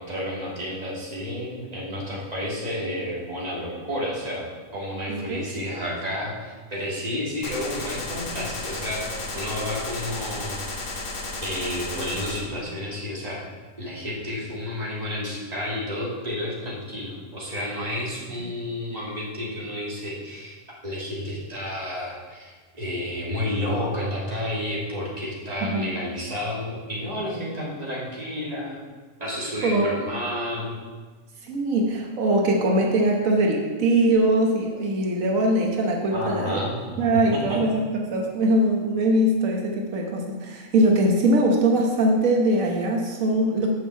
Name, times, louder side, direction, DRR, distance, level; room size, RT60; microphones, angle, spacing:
voice 1, 0.0-9.0 9.3-10.8 11.4-13.4 13.8-20.6 20.8-28.8 29.2-30.7 36.1-37.6, left 1 dB, 30° right, -6 dB, 2.6 m, -31 dB
voice 2, 5.1-5.7 18.4-18.5 25.6-25.9 29.6-29.9 31.4-36.6 37.0-43.7, right 1 dB, 85° right, 0 dB, 1.5 m, -22 dB
Gunshot gunfire, 7.4-12.4, left 2 dB, 70° left, 1.6 m, -33 dB
6.7 x 6.4 x 7.4 m, 1.4 s
omnidirectional pair, 1.4 m